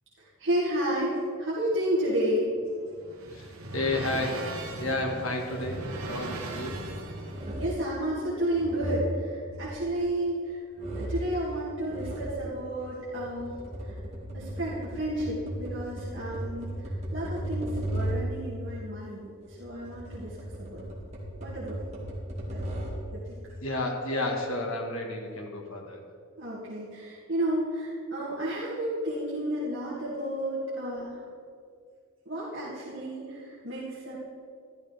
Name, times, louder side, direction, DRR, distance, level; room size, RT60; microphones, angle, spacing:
voice 1, 0.2-2.5 7.6-10.6 11.0-13.6 13.8-14.0 14.3-20.8 21.4-21.8 22.5-22.6 23.1-23.4 26.4-31.2 32.3-34.2, right 1 dB, 60° right, -8 dB, 2.3 m, -31 dB
sound 1, 2.6-7.6, right 2 dB, 80° right, 1.4 m, -38 dB
voice 2, 3.3-6.9 23.6-26.0, left 2 dB, 80° left, 1 dB, 1.7 m, -32 dB
sound 2, 5.4-5.9 6.4-6.9 7.3-7.8 8.4-10.4 10.8-11.3 11.8-12.4 13.0-18.4 19.4-23.1, right 1 dB, 30° right, 2.2 m, -36 dB
13.5 x 11.5 x 3.5 m, 2.2 s
head